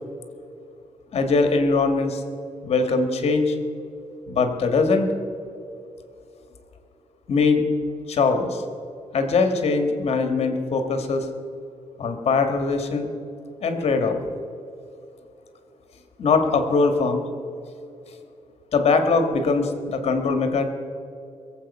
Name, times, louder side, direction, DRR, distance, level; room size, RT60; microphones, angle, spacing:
voice 1, 1.1-2.2 2.6-3.6 4.3-5.1 7.3-7.7 8.1-8.6 9.1-11.3 12.0-13.1 13.6-14.2 16.2-17.2 18.7-20.6, left 4 dB, 55° left, 7 dB, 1.8 m, -21 dB
21.5 x 8.0 x 5.5 m, 2.6 s
cardioid pair, 115°, 12 cm